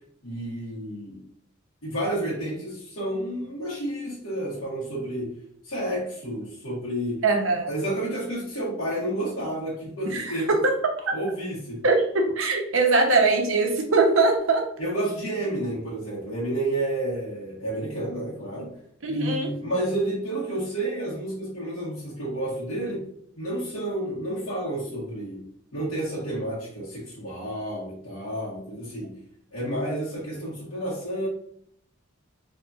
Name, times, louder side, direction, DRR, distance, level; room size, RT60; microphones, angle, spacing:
voice 1, 0.2-1.2 1.8-5.3 5.6-7.2 7.7-10.5 11.1-11.8 14.8-18.7 19.1-23.1 23.4-25.5 25.7-29.2 29.5-31.3, right 1 dB, 80° left, -9 dB, 1.5 m, -30 dB
voice 2, 7.2-7.7 10.1-10.7 11.0-11.1 11.8-14.7 19.0-19.5, right 3 dB, 70° right, 2 dB, 0.9 m, -22 dB
4.1 x 3.4 x 2.5 m, 0.65 s
head